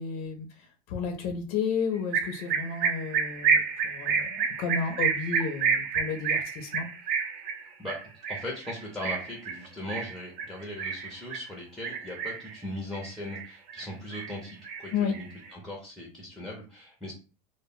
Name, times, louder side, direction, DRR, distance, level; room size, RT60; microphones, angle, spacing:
voice 1, 0.0-6.9 14.9-15.2, left 5 dB, 55° left, 3 dB, 0.5 m, -32 dB
sound 1, 2.1-11.5 11.8-12.6 12.9-13.9 14.1-15.5, right 6 dB, 45° right, 0.5 m, -29 dB
voice 2, 8.3-17.1, left 1 dB, ahead, -1 dB, 0.5 m, -39 dB
2.1 x 2.0 x 3.4 m, 0.35 s
supercardioid pair, 140°, 20 cm